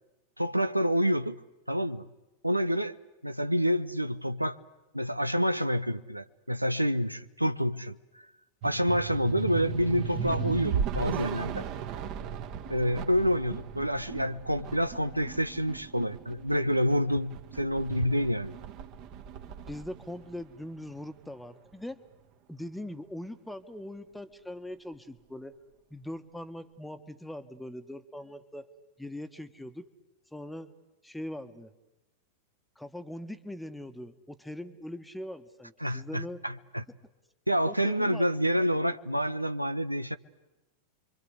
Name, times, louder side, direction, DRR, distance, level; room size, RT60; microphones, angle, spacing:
voice 1, 0.4-1.4 1.7-2.0 2.4-2.9 3.2-4.6 4.9-8.0 8.6-11.6 12.7-18.5 35.8-36.8 37.5-40.2, equal, 90° right, 0.9 m, -28 dB
sound 1, 8.6-21.1, right 7 dB, 40° right, 1.9 m, -37 dB
voice 2, 19.5-22.0 22.5-25.6 25.9-28.7 29.0-29.9 30.3-30.7 31.0-31.7 32.8-36.4 37.6-38.3, left 1 dB, 5° left, 1.4 m, -41 dB
30.0 x 24.0 x 8.2 m
figure-of-eight pair, 90°, 0 cm